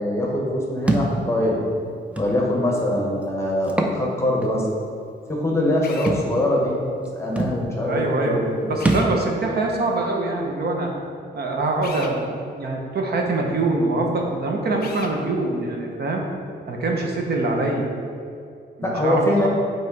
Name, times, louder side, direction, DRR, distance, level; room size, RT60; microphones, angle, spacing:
voice 1, 0.0-1.6 2.2-4.7 5.3-6.8 7.1-8.7 18.8-19.5, left 1 dB, 15° left, -2 dB, 0.8 m, -23 dB
Thump thud, 0.9-1.1 2.2-2.3 3.6-4.0 4.4-4.5 6.1-6.3 7.0-7.1 7.4-7.6 8.8-9.1, right 2 dB, 5° right, 0.4 m, -22 dB
Drill, 5.8-6.2 8.8-9.1 11.8-12.2 14.8-15.2, left 5 dB, 55° left, 0.5 m, -37 dB
voice 2, 7.9-8.4 8.7-10.9 11.3-16.2 16.7-17.9 18.8-19.5, right 2 dB, 60° right, 1 dB, 0.8 m, -24 dB
7.2 x 3.2 x 4.6 m, 2.4 s
wide cardioid pair, 170°, 19 cm